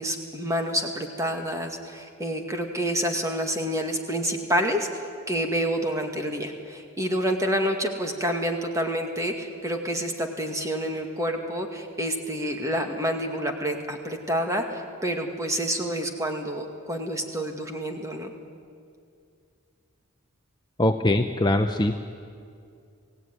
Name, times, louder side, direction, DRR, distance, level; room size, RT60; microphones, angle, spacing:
voice 1, 0.0-18.3, equal, 15° right, 4 dB, 2.2 m, -28 dB
voice 2, 20.8-22.0, left 1 dB, 20° left, 6 dB, 0.7 m, -22 dB
28.0 x 17.5 x 9.7 m, 2.3 s
head